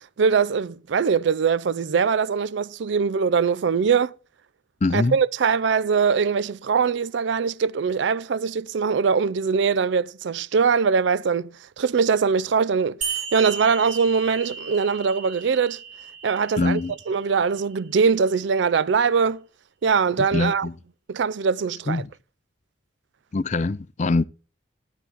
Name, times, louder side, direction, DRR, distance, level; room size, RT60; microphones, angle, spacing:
voice 1, 0.0-4.1 4.9-15.8 16.2-16.8 17.1-19.4 19.8-20.7 21.1-22.0, right 5 dB, 65° right, 0.4 m, -22 dB
voice 2, 4.8-5.2 16.6-16.9 20.3-20.7 21.9-22.1 23.3-24.2, left 3 dB, 35° left, 0.4 m, -23 dB
sound 1, 13.0-18.0, right 6 dB, 40° right, 2.0 m, -35 dB
12.0 x 8.4 x 3.5 m
head